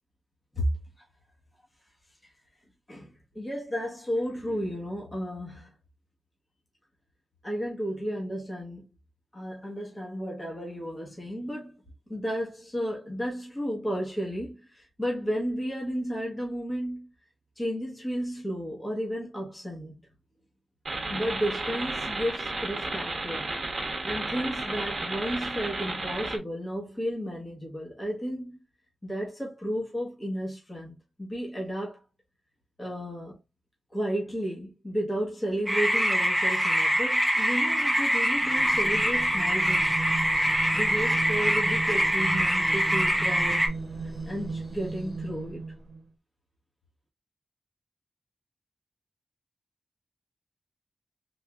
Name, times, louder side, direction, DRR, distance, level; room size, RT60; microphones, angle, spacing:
voice 1, 2.9-5.7 7.4-8.9 9.3-11.8 12.1-17.1 17.6-20.0 21.1-23.5 24.0-28.6 29.0-32.0 32.8-33.4 33.9-40.0 40.7-45.7, equal, 15° left, 1.2 m, -33 dB
sound 1, 20.9-26.4, right 2 dB, 40° right, 1.1 m, -33 dB
Frogs at night, 35.7-43.7, equal, 5° right, 0.8 m, -24 dB
sound 2, 38.4-46.1, right 3 dB, 90° right, 0.7 m, -36 dB
3.5 x 3.3 x 2.3 m
wide cardioid pair, 170°, 0 cm